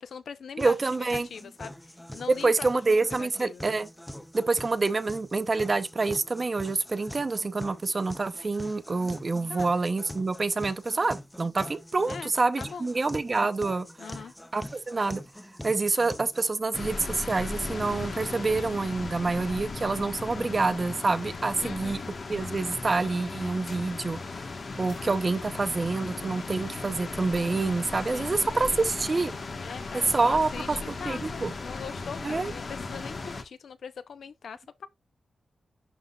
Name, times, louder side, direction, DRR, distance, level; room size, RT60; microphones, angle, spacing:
voice 1, 0.0-0.8 1.1-2.8 3.1-3.7 9.5-9.7 12.1-12.3 12.6-12.9 14.0-14.3 21.6-22.0 28.1-28.9 29.6-34.9, left 6 dB, 70° left, 0.6 m, -41 dB
sound 1, 0.6-16.6, left 1 dB, 5° left, 0.6 m, -44 dB
voice 2, 0.6-1.3 2.4-3.9 4.3-13.9 14.5-15.2 15.6-22.0 22.3-24.2 24.8-29.4 30.1-30.5 30.9-31.5 32.2-32.5, right 3 dB, 30° right, 0.7 m, -27 dB
sound 2, 16.7-33.4, left 3 dB, 45° left, 1.2 m, -37 dB
11.0 x 3.9 x 2.3 m
wide cardioid pair, 160°, 0 cm